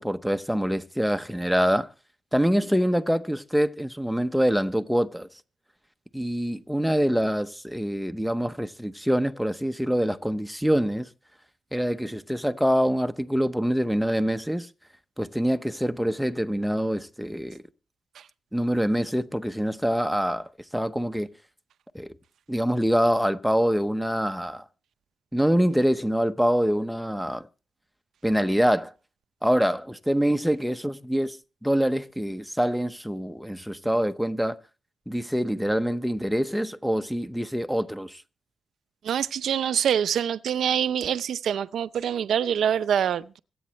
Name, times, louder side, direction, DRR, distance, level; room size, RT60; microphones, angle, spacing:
voice 1, 0.0-1.9 2.3-5.3 6.1-11.1 11.7-14.7 15.2-17.6 18.5-21.3 21.9-22.2 22.5-24.6 25.3-27.5 28.2-28.9 29.4-31.4 31.6-34.6 35.1-38.2, equal, ahead, 0.8 m, -25 dB
voice 2, 39.0-43.4, right 9 dB, 85° right, 0.5 m, -25 dB
25.5 x 8.6 x 3.1 m
wide cardioid pair, 125°, 0 cm